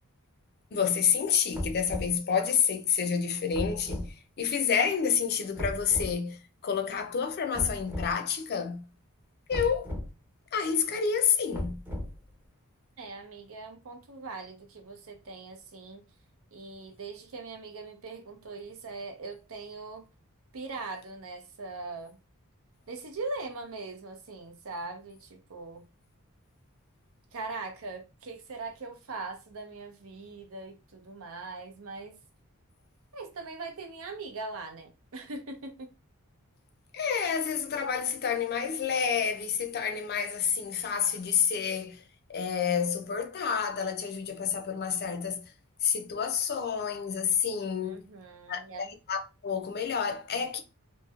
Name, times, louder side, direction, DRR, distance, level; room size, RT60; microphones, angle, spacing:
voice 1, 0.7-4.1 4.4-8.8 9.5-9.9 10.5-11.8 36.9-42.0 42.3-45.4 45.8-48.0 48.5-50.6, left 7 dB, 45° left, 0.5 m, -29 dB
sound 1, 1.5-2.2 3.5-4.1 5.6-6.1 7.5-8.1 9.5-10.1 11.5-12.3, left 1 dB, 10° right, 0.7 m, -35 dB
voice 2, 13.0-16.0 16.5-20.0 20.5-22.2 22.9-25.9 27.3-32.2 33.1-35.9 47.8-48.9, right 3 dB, 65° right, 0.7 m, -41 dB
3.0 x 2.7 x 2.4 m
head